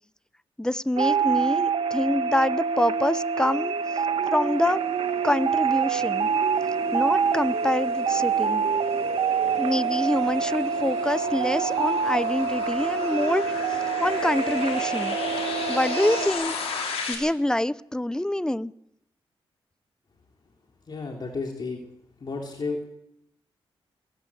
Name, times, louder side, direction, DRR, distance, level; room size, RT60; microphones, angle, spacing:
voice 1, 0.6-3.7 4.3-4.8 5.2-6.3 6.9-8.6 9.6-15.2 15.7-16.5 17.1-18.7, left 1 dB, 5° left, 18 dB, 0.7 m, -26 dB
sound 1, 1.0-16.3, right 6 dB, 70° right, 1.5 m, -26 dB
sound 2, 4.0-17.2, left 5 dB, 85° left, 6.0 m, -36 dB
voice 2, 20.9-21.8 22.2-22.9, left 3 dB, 45° left, 1 dB, 3.3 m, -32 dB
22.5 x 13.5 x 8.6 m, 0.78 s
cardioid pair, 75°, 10 cm